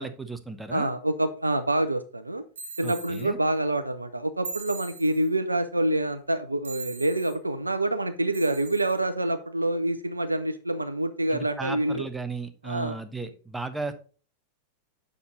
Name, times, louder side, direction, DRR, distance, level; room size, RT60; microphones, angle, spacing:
voice 1, 0.0-0.9 2.8-3.4 11.3-13.9, right 4 dB, 10° right, 10 dB, 0.8 m, -35 dB
voice 2, 0.7-2.4 2.8-12.0 12.6-13.0 13.2-13.3, right 1 dB, 85° right, 9 dB, 0.5 m, -27 dB
sound 1, 2.5-3.3 4.4-5.3 6.6-7.3 8.3-9.0, right 4 dB, 65° right, 1.8 m, -40 dB
7.0 x 6.0 x 3.8 m, 0.38 s
figure-of-eight pair, 90°, 0 cm